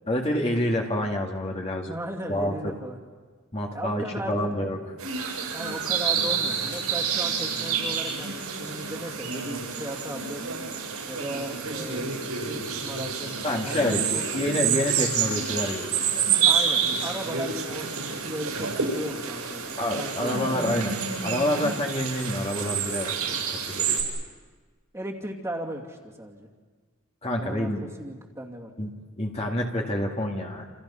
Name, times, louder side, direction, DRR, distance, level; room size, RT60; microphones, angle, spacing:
voice 1, 0.1-1.9 2.3-2.7 3.5-4.8 13.4-14.0 14.3-16.3 19.7-21.0 21.2-23.2 23.5-24.0 27.2-27.8 28.8-28.9 29.2-30.7, left 1 dB, 30° left, 0 dB, 2.2 m, -27 dB
voice 2, 1.9-3.0 3.7-4.8 5.5-10.4 11.0-12.1 12.4-14.5 16.4-20.7 24.9-26.5 27.4-28.7, right 1 dB, 15° right, 0 dB, 2.6 m, -36 dB
sound 1, 5.0-24.0, right 6 dB, 85° right, 7.7 m, -28 dB
29.0 x 28.5 x 5.7 m, 1.4 s
head